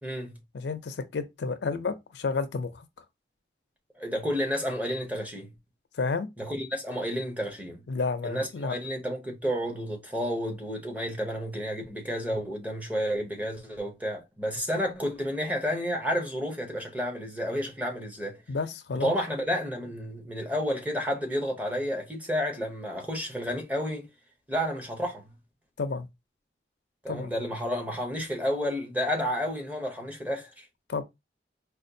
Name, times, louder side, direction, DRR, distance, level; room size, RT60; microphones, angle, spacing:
voice 1, 0.0-0.4 4.0-5.5 6.4-7.8 8.2-18.4 18.9-24.1 24.5-25.3 27.0-30.7, equal, 10° right, 0.6 m, -31 dB
voice 2, 0.5-2.8 6.0-6.3 7.9-8.7 18.5-19.1 25.8-26.1 27.1-27.3 30.9-31.0, left 4 dB, 75° left, 0.4 m, -31 dB
4.2 x 2.2 x 2.6 m
head